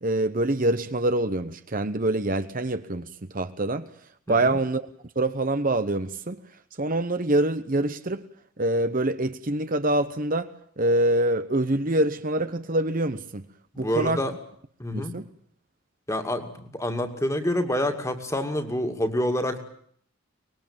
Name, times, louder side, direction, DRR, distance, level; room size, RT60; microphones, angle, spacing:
voice 1, 0.0-3.9 4.3-4.8 5.1-6.4 6.8-8.2 8.6-10.5 10.8-13.5 13.8-14.2 14.9-15.3, right 1 dB, 40° right, 1.0 m, -25 dB
voice 2, 13.7-14.3 14.8-15.2 16.1-19.6, left 1 dB, 15° left, 2.4 m, -27 dB
24.5 x 20.5 x 8.9 m
head